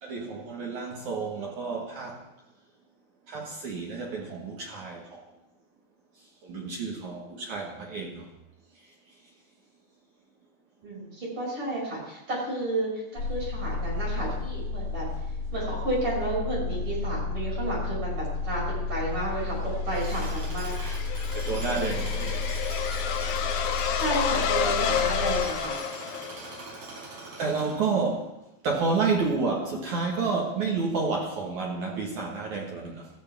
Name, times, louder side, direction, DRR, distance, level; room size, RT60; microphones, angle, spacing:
voice 1, 0.0-2.2 3.3-5.2 6.4-8.3 20.1-20.3 20.8-23.2 26.0-26.2 27.4-28.3 28.6-33.1, right 4 dB, 60° right, 2.1 m, -30 dB
voice 2, 10.8-15.1 15.5-19.5 19.8-20.7 23.9-25.8, right 2 dB, 30° right, 6.4 m, -31 dB
sound 1, 13.1-25.4, left 4 dB, 40° left, 6.4 m, -32 dB
sound 2, 19.7-26.8, left 9 dB, 85° left, 2.0 m, -30 dB
Tools, 19.9-28.2, right 3 dB, 80° right, 6.8 m, -42 dB
18.0 x 13.5 x 3.4 m
omnidirectional pair, 5.0 m